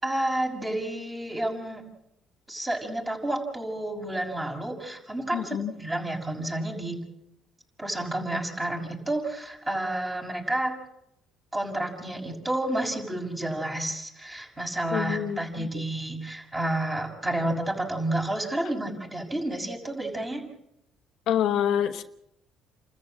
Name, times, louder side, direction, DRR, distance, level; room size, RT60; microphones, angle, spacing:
voice 1, 0.0-1.8 2.5-7.0 7.8-10.8 11.5-20.5, right 1 dB, 20° right, 2 dB, 6.2 m, -30 dB
voice 2, 5.3-5.7 14.9-15.7 21.3-22.0, left 10 dB, 65° left, 7 dB, 1.1 m, -27 dB
29.5 x 14.0 x 7.6 m, 0.83 s
cardioid pair, 100°, 0 cm